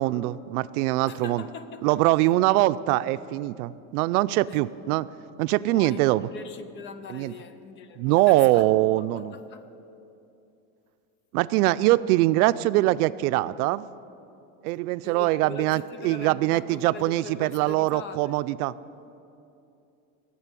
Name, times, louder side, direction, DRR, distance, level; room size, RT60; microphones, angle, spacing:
voice 1, 0.0-1.4 1.8-5.1 5.4-6.3 7.1-7.3 8.0-9.3 11.3-13.8 14.6-18.7, right 17 dB, 90° right, 0.6 m, -23 dB
voice 2, 1.1-2.2 4.5-4.6 5.6-8.7 9.1-9.7 15.0-18.4, left 5 dB, 25° left, 0.5 m, -41 dB
15.5 x 7.6 x 9.8 m
cardioid pair, 160°, 43 cm